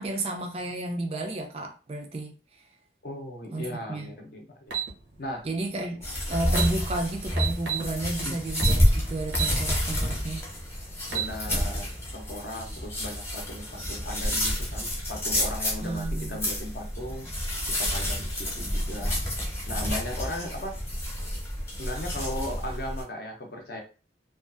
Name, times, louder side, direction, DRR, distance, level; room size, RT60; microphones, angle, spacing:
voice 1, 0.0-2.3 3.5-4.1 5.4-10.4 15.8-16.4, right 2 dB, 35° right, 0.3 m, -32 dB
voice 2, 3.0-4.8 5.2-5.5 8.2-8.4 11.1-17.3 17.8-19.2 19.7-20.8 21.8-23.8, left 1 dB, 55° left, 0.6 m, -37 dB
sound 1, 4.7-4.9 6.1-6.2 6.5-6.7 7.4-7.9 8.6-8.8 9.3-9.6 10.0-10.1 10.9-11.3, right 8 dB, 85° right, 0.6 m, -29 dB
sound 2, 6.0-23.0, equal, 15° left, 0.8 m, -29 dB
2.5 x 2.3 x 2.4 m
head